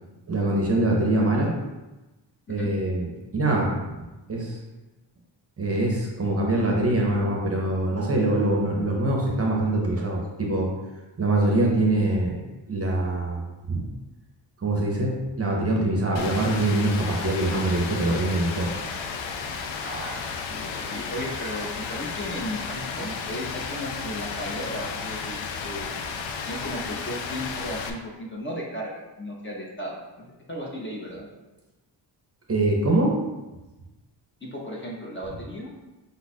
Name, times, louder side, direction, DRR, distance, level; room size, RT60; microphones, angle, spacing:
voice 1, 0.3-1.5 2.5-3.7 4.3-4.6 5.6-10.7 11.2-12.4 12.7-13.9 14.6-18.7 32.5-33.2, right 2 dB, 30° right, -1 dB, 0.6 m, -24 dB
Rain, 16.2-27.9, left 5 dB, 75° left, 0.6 m, -33 dB
voice 2, 19.8-26.0 26.5-31.3 34.4-35.7, equal, 25° left, -3 dB, 0.6 m, -35 dB
5.4 x 2.4 x 4.1 m, 1.1 s
wide cardioid pair, 180°, 47 cm